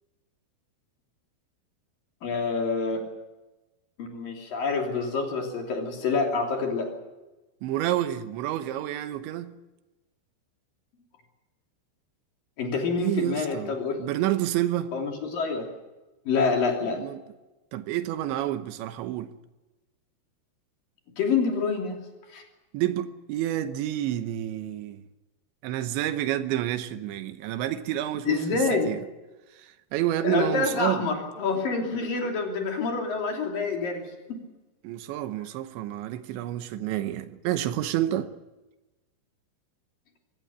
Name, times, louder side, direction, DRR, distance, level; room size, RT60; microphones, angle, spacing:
voice 1, 2.2-3.0 4.0-6.9 12.6-14.0 14.9-15.7 16.3-17.0 21.2-22.0 22.3-22.4 28.3-28.9 30.2-34.0 34.3-34.4, left 4 dB, 55° left, 4.4 m, -27 dB
voice 2, 7.6-9.5 13.0-14.9 16.8-17.2 17.7-19.3 22.7-25.0 25.6-29.0 29.6-31.1 34.8-38.3, right 13 dB, 85° right, 3.3 m, -29 dB
23.5 x 16.0 x 8.8 m
omnidirectional pair, 5.2 m